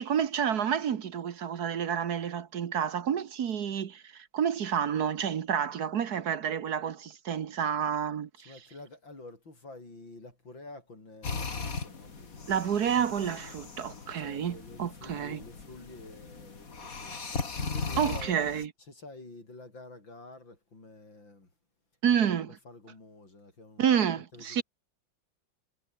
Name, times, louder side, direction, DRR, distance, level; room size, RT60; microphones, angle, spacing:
voice 1, 0.0-8.5 12.5-15.4 18.0-18.7 22.0-22.5 23.8-24.6, right 8 dB, 60° right, 1.6 m, -29 dB
voice 2, 8.4-12.5 14.1-18.4 18.8-21.5 22.3-22.4 22.6-24.6, left 2 dB, 85° left, 7.9 m, -49 dB
sound 1, 11.2-18.7, left 4 dB, 45° left, 2.9 m, -38 dB
omnidirectional pair, 2.0 m